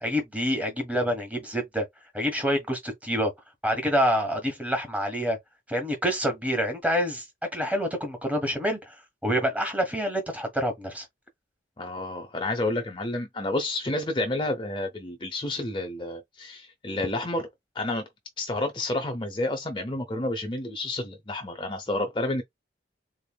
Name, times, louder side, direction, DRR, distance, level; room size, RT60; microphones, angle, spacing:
voice 1, 0.0-1.8 2.1-3.3 3.6-5.4 5.7-7.2 7.5-8.9 9.2-11.0, equal, 10° right, 1.4 m, -27 dB
voice 2, 11.8-17.5 17.7-18.0 18.4-22.4, left 2 dB, 25° left, 0.7 m, -30 dB
4.0 x 3.3 x 2.3 m
head